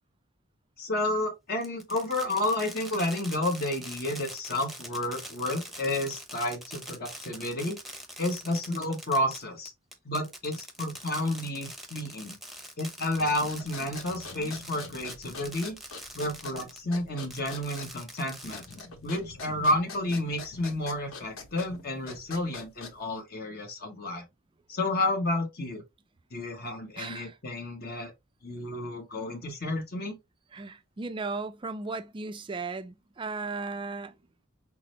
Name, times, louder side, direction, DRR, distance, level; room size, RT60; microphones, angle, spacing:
voice 1, 0.8-7.8 8.2-9.7 10.0-12.4 12.8-15.8 16.1-18.6 19.0-24.2 24.7-25.8 26.3-28.1 28.4-30.2, left 1 dB, 50° left, 1.0 m, -31 dB
Fireworks, 1.6-16.8 17.2-19.1, right 1 dB, ahead, 0.8 m, -44 dB
sound 1, 13.1-23.2, left 3 dB, 85° left, 0.9 m, -45 dB
voice 2, 27.0-27.4 30.5-34.1, right 3 dB, 25° right, 0.4 m, -36 dB
5.8 x 2.0 x 3.1 m
head